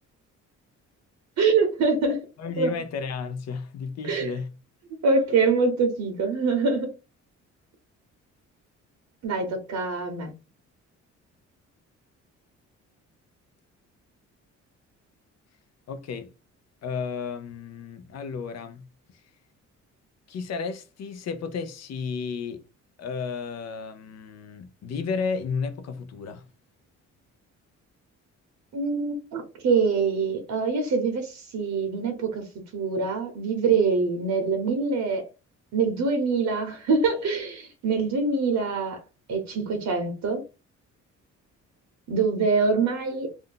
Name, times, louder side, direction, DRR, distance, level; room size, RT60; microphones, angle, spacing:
voice 1, 1.4-2.3 2.6-2.7 4.0-4.3 5.0-6.9 9.2-10.3 28.7-32.5 32.7-35.3 35.7-39.0 39.3-40.4 42.1-43.5, right 4 dB, 65° right, 0.8 m, -24 dB
voice 2, 2.4-4.5 15.9-16.3 16.8-18.9 20.3-22.6 23.0-26.4, left 5 dB, 60° left, 0.6 m, -33 dB
2.5 x 2.2 x 3.8 m
cardioid pair, 90°, 30 cm